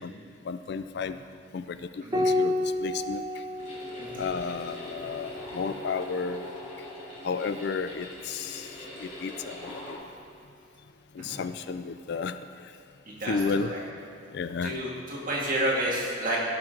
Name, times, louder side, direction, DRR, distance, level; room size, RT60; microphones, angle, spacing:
voice 1, 0.5-1.2 1.5-3.2 4.2-6.5 7.2-8.7 9.0-9.8 11.1-12.4 13.2-13.7 14.3-14.7, left 5 dB, 55° left, 11 dB, 0.4 m, -32 dB
Piano, 2.1-7.0 8.6-9.4, left 1 dB, 20° right, 0.7 m, -32 dB
sound 1, 3.6-9.9, left 1 dB, 35° left, 2.3 m, -43 dB
voice 2, 13.1-13.8 14.6-16.4, right 1 dB, 45° right, -4 dB, 1.8 m, -30 dB
16.0 x 6.0 x 3.8 m, 2.4 s
head